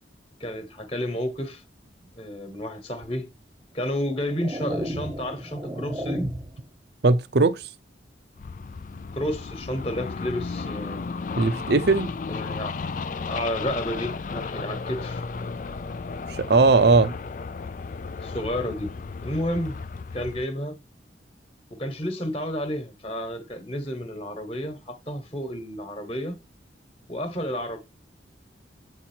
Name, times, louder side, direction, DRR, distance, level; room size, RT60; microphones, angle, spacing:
voice 1, 0.4-1.6 2.1-3.3 3.7-6.3 9.1-11.1 12.3-12.8 13.3-15.2 18.2-19.0 19.2-19.8 20.1-20.8 21.7-26.4 27.1-27.8, equal, 30° left, 1.3 m, -31 dB
sound 1, 3.0-3.2 3.9-6.7, equal, 20° right, 0.7 m, -33 dB
voice 2, 7.0-7.6 11.4-12.1 16.3-17.1, right 3 dB, 60° right, 0.6 m, -19 dB
sound 2, 8.4-20.4, left 4 dB, 45° left, 0.4 m, -34 dB
8.1 x 4.2 x 4.5 m
head